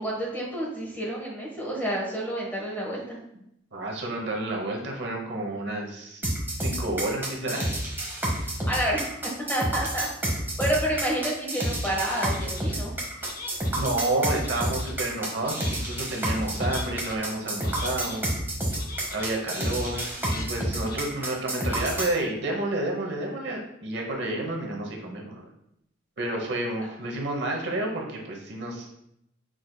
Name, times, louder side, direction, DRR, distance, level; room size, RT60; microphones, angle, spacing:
voice 1, 0.0-3.2 8.7-9.0 9.5-12.9, right 1 dB, 10° left, -4 dB, 1.1 m, -29 dB
voice 2, 3.7-6.2 6.6-7.6 13.7-18.2 19.1-25.5 26.2-29.0, right 2 dB, 60° right, 0 dB, 0.8 m, -30 dB
sound 1, 6.2-22.1, right 1 dB, 10° right, 0.9 m, -29 dB
sound 2, 12.3-12.7 13.2-13.9 14.3-15.0 15.4-16.0 16.5-17.2 17.6-18.2 18.7-19.3 19.8-20.5 20.8-21.0, left 3 dB, 45° left, 0.6 m, -41 dB
6.2 x 3.8 x 2.2 m, 0.77 s
head